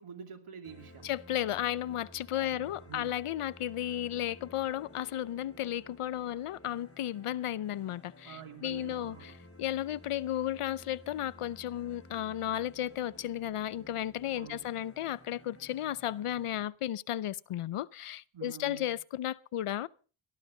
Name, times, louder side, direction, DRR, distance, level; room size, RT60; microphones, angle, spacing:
voice 1, 0.0-1.1 2.3-3.1 8.2-9.3 14.3-14.7 18.3-19.0, right 7 dB, 80° right, 2.8 m, -47 dB
sound 1, 0.6-16.7, left 1 dB, 25° left, 7.5 m, -54 dB
voice 2, 1.0-9.3 9.6-19.9, left 12 dB, 90° left, 0.7 m, -34 dB
18.5 x 13.5 x 3.9 m
cardioid pair, 50°, 50 cm